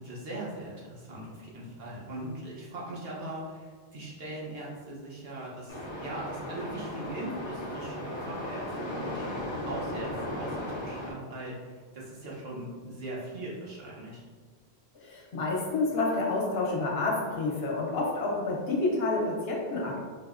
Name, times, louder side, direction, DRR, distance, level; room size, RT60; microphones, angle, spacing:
voice 1, 0.0-14.2, right 1 dB, 70° right, -5 dB, 1.0 m, -40 dB
sound 1, 5.7-11.1, left 1 dB, 30° left, 0.6 m, -36 dB
voice 2, 14.9-20.0, left 3 dB, 70° left, -1 dB, 0.9 m, -29 dB
4.6 x 2.1 x 2.4 m, 1.5 s
omnidirectional pair, 1.1 m